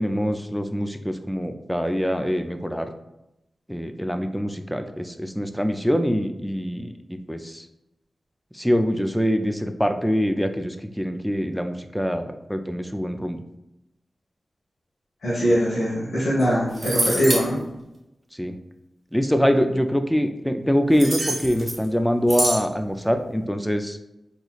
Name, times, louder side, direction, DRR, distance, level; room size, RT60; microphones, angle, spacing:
voice 1, 0.0-2.9 3.7-7.7 8.5-13.4 18.3-18.6 19.1-24.0, equal, ahead, 7 dB, 0.3 m, -24 dB
voice 2, 15.2-17.5, equal, 90° left, -9 dB, 1.3 m, -21 dB
sound 1, 16.4-16.5 16.7-17.5 20.9-21.8 22.3-22.6, right 1 dB, 55° right, 1.1 m, -26 dB
4.0 x 3.0 x 2.3 m, 0.90 s
wide cardioid pair, 95°, 0 cm